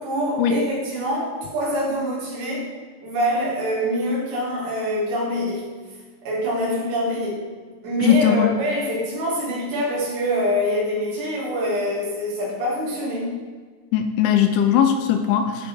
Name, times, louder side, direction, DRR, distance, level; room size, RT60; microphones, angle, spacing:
voice 1, 0.0-2.7 3.0-5.6 6.2-7.4 7.8-13.4, equal, 65° right, -6 dB, 4.8 m, -24 dB
voice 2, 8.0-8.6 13.9-15.7, left 9 dB, 80° left, 7 dB, 2.9 m, -19 dB
14.0 x 4.9 x 4.6 m, 1.5 s
omnidirectional pair, 5.6 m